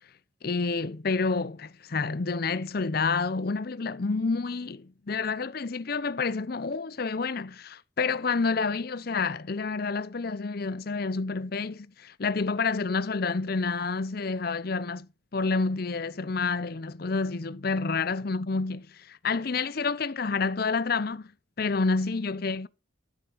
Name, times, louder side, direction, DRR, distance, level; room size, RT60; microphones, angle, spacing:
voice 1, 0.4-21.3 21.6-22.7, left 4 dB, 45° left, 0.6 m, -29 dB
13.0 x 7.7 x 5.0 m
head